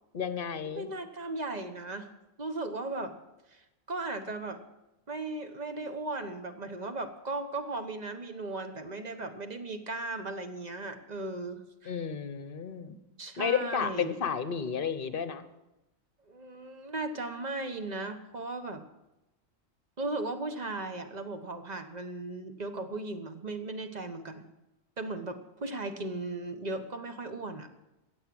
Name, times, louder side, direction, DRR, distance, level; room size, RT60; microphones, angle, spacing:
voice 1, 0.1-0.9 11.9-13.0 13.4-15.4, left 7 dB, 45° left, 12 dB, 1.1 m, -32 dB
voice 2, 0.7-2.1 2.4-3.1 3.5-3.6 3.9-4.6 5.1-11.9 13.2-14.1 16.3-18.8 20.0-24.4 25.0-27.7, right 2 dB, 35° right, 8 dB, 1.1 m, -37 dB
15.5 x 8.3 x 7.6 m, 0.95 s
omnidirectional pair, 1.4 m